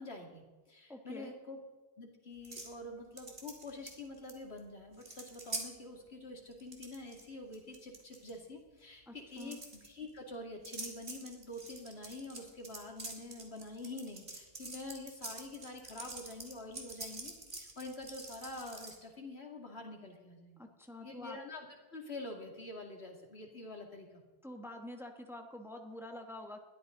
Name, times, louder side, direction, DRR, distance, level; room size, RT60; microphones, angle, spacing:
voice 1, 0.0-1.6 2.0-20.6 21.0-21.7 21.9-24.2, left 2 dB, 80° left, 1 dB, 2.8 m, -46 dB
voice 2, 0.9-1.3 9.1-9.6 20.6-21.4 24.4-26.6, left 1 dB, ahead, 4 dB, 1.2 m, -47 dB
sound 1, 2.4-2.7 3.2-4.3 4.6-4.7 4.9-5.6 6.5-7.2 7.5-8.3 9.3-9.9 10.6-18.9, right 2 dB, 65° right, 2.6 m, -45 dB
20.5 x 13.5 x 3.9 m, 1.2 s
omnidirectional pair, 1.1 m